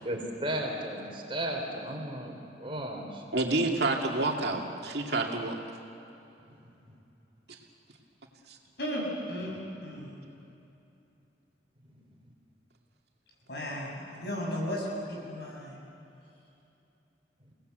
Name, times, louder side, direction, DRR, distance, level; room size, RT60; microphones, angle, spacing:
voice 1, 0.0-3.2 11.9-12.0, right 1 dB, 30° right, 1 dB, 3.5 m, -35 dB
voice 2, 3.3-5.5, right 2 dB, 60° right, 1 dB, 2.5 m, -28 dB
voice 3, 8.8-10.1 13.5-15.8, equal, 60° left, -2 dB, 7.2 m, -35 dB
30.0 x 18.5 x 8.1 m, 2.8 s
head